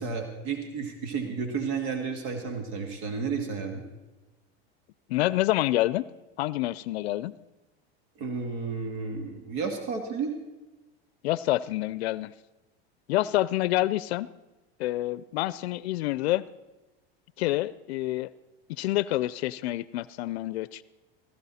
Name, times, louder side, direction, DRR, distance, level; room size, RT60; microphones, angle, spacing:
voice 1, 0.0-3.8 8.2-10.3, right 5 dB, 70° right, 4 dB, 2.3 m, -32 dB
voice 2, 5.1-6.1 6.4-7.4 11.2-12.3 13.1-14.3 14.8-16.4 17.4-18.3 18.8-20.8, left 16 dB, 90° left, 18 dB, 0.5 m, -27 dB
17.0 x 15.0 x 4.2 m, 1.1 s
supercardioid pair, 130°, 31 cm